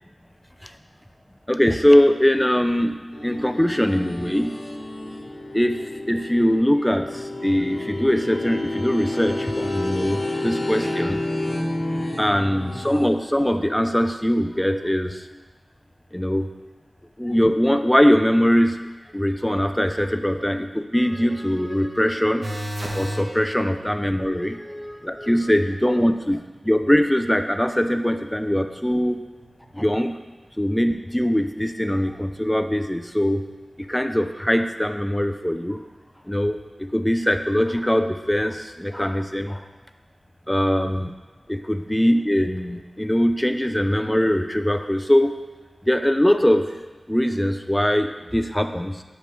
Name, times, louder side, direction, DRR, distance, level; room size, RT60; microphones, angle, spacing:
voice 1, 1.5-4.6 5.5-11.2 12.2-15.2 16.1-16.5 17.2-18.9 19.1-22.5 22.9-29.3 29.7-30.2 30.6-33.4 33.8-35.8 36.3-39.6 40.5-41.1 41.5-45.4 45.9-46.7 47.1-49.0, equal, 10° left, 7 dB, 0.4 m, -21 dB
sound 1, 3.1-13.2, left 1 dB, 70° left, 1.2 m, -30 dB
sound 2, 22.4-23.3 29.7-29.8, equal, 65° right, 1.0 m, -29 dB
7.8 x 5.2 x 3.0 m, 1.2 s
wide cardioid pair, 55°, 0 cm